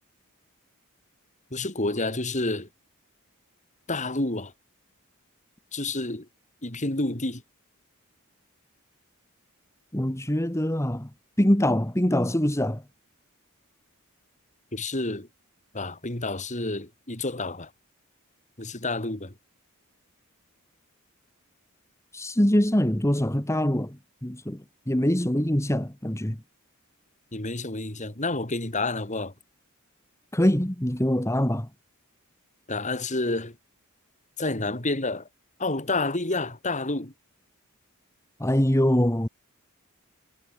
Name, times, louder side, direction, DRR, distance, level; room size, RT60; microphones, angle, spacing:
voice 1, 1.5-2.7 3.9-4.5 5.7-6.3 6.6-7.4 14.7-15.3 15.7-17.7 18.6-19.3 27.3-29.3 32.7-33.5 34.4-35.3 35.6-37.1, left 2 dB, 35° left, 3.6 m, -29 dB
voice 2, 9.9-11.1 11.4-12.8 22.1-26.4 30.3-31.7 38.4-39.3, equal, 15° left, 1.8 m, -24 dB
head